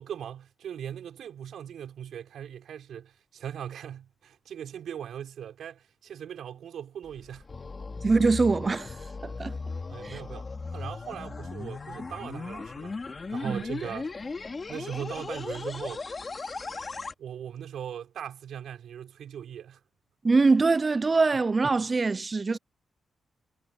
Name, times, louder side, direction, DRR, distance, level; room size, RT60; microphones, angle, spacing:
voice 1, 0.0-7.4 9.4-9.5 9.9-12.9 13.3-14.2 14.7-16.0 17.2-19.8, right 9 dB, 80° right, 5.6 m, -39 dB
sound 1, 7.0-17.1, left 4 dB, 30° left, 2.1 m, -37 dB
voice 2, 8.0-8.9 9.2-9.6 10.0-10.2 13.4-13.6 20.2-22.6, right 3 dB, 30° right, 0.3 m, -23 dB
cardioid pair, 125°, 0 cm